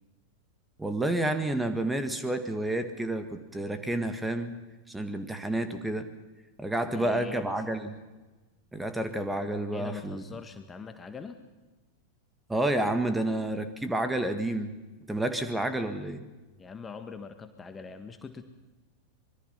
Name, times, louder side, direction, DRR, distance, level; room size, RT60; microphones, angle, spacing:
voice 1, 0.8-4.5 4.9-6.1 6.6-7.9 8.7-10.2 12.5-14.7 15.1-16.2, right 1 dB, 5° right, 9 dB, 1.8 m, -30 dB
voice 2, 6.9-7.6 9.7-11.4 16.6-18.4, left 5 dB, 15° left, 8 dB, 1.6 m, -42 dB
25.5 x 22.5 x 5.8 m, 1.2 s
figure-of-eight pair, 90°, 0 cm